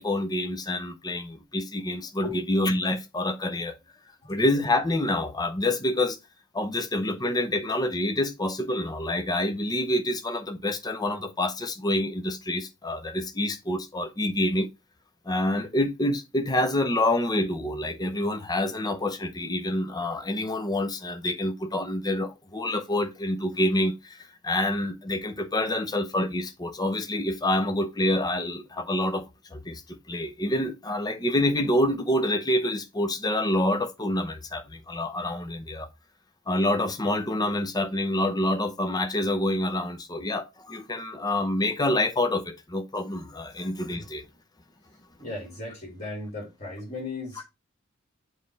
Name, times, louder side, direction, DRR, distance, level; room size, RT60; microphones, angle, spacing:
voice 1, 0.0-3.7 4.3-6.2 6.5-14.7 15.3-29.3 29.5-35.9 36.5-44.2, left 1 dB, 20° left, 0.7 m, -27 dB
voice 2, 45.2-47.4, left 3 dB, 35° left, 4.1 m, -36 dB
7.4 x 3.3 x 4.0 m
head